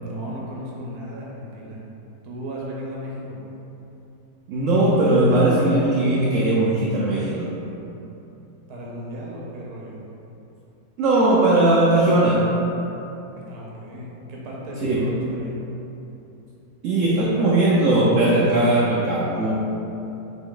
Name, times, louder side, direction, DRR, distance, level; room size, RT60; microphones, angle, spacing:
voice 1, 0.0-1.8 2.2-3.4 8.7-10.0 13.4-15.5, equal, 85° right, -4 dB, 1.3 m, -35 dB
voice 2, 4.5-7.5 11.0-12.5 14.8-15.1 16.8-19.5, right 2 dB, 65° right, -6 dB, 0.9 m, -19 dB
4.1 x 3.1 x 3.7 m, 2.9 s
omnidirectional pair, 1.6 m